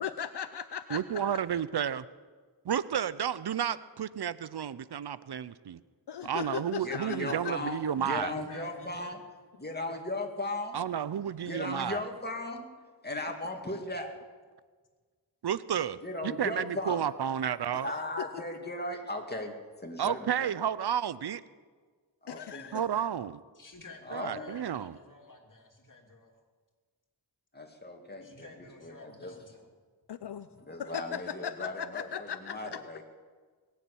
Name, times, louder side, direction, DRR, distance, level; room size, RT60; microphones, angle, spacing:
voice 1, 0.0-1.2 6.1-7.7 17.7-17.9 18.2-18.4 22.3-22.8 30.1-30.5 30.8-32.8, left 8 dB, 70° left, 11 dB, 0.6 m, -38 dB
voice 2, 0.9-2.1 2.6-5.8 6.2-8.3 10.7-12.0 15.4-17.9 20.0-21.4 22.7-23.4 24.1-25.0, right 9 dB, 70° right, 17 dB, 0.6 m, -31 dB
voice 3, 6.8-9.2 9.6-10.8 11.4-12.7 13.0-14.1 16.0-17.0 17.8-20.5 22.2-22.7 24.0-24.5 27.5-28.5 28.8-29.4 30.6-33.0, left 1 dB, 25° left, 2 dB, 2.5 m, -37 dB
voice 4, 8.3-9.1 23.5-26.4 28.2-29.7, left 2 dB, 50° left, 2 dB, 2.8 m, -50 dB
21.5 x 7.3 x 8.6 m, 1.5 s
wide cardioid pair, 60°, 41 cm